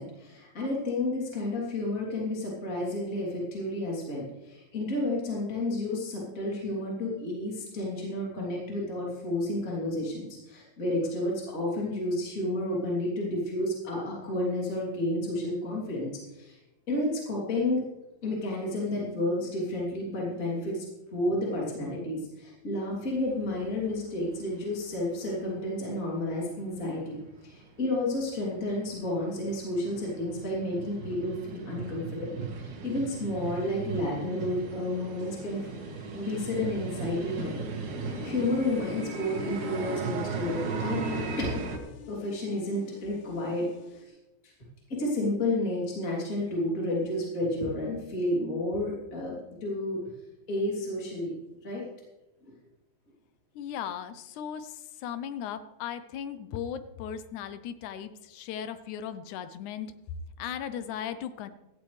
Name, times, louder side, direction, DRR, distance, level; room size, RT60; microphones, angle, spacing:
voice 1, 0.0-16.6 16.9-17.8 18.2-20.8 21.1-35.7 36.1-41.0 41.4-41.6 42.1-44.1 44.4-44.5 44.9-50.0 50.5-51.3 51.6-51.8 52.4-52.5, left 1 dB, 25° left, -4 dB, 3.2 m, -31 dB
sound 1, 22.9-25.0 25.3-25.4 25.9-26.0 26.3-26.4 26.7-41.8, right 4 dB, 90° right, 3.1 m, -38 dB
sound 2, 35.2-44.0, left 9 dB, 70° left, 1.5 m, -46 dB
voice 2, 53.6-60.0 60.4-61.5, left 9 dB, 90° left, 12 dB, 2.2 m, -37 dB
16.0 x 14.0 x 3.3 m, 1.0 s
omnidirectional pair, 3.4 m